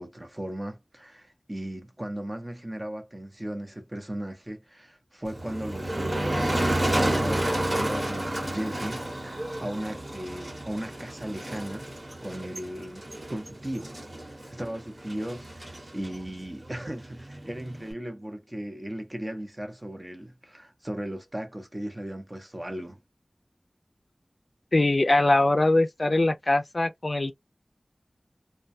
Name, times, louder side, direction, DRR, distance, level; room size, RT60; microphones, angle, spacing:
voice 1, 0.0-11.9 12.2-13.9 14.5-23.0, right 1 dB, 25° right, 0.8 m, -36 dB
Motor vehicle (road), 5.2-17.9, right 1 dB, 40° right, 1.3 m, -31 dB
voice 2, 24.7-27.3, left 2 dB, 50° left, 0.4 m, -22 dB
2.2 x 2.2 x 2.5 m
wide cardioid pair, 65°, 0 cm